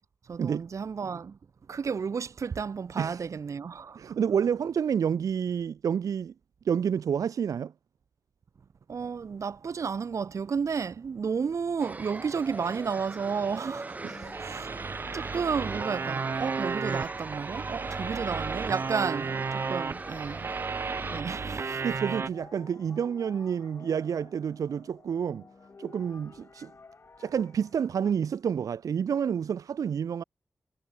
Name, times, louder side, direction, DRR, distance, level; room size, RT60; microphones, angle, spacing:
voice 1, 0.3-1.4 1.7-4.2 8.9-20.5 21.1-21.8, right 6 dB, 65° right, 1.3 m, -32 dB
voice 2, 4.0-6.3 6.6-7.7 14.0-14.4 21.8-25.5 25.8-26.7 27.2-30.2, right 7 dB, 90° right, 0.4 m, -29 dB
sound 1, 11.8-21.2, right 3 dB, 25° right, 2.0 m, -41 dB
sound 2, 14.0-28.1, left 4 dB, 45° left, 3.3 m, -52 dB
sound 3, 14.3-22.3, right 5 dB, 45° right, 0.7 m, -33 dB
wide cardioid pair, 145°, 6 cm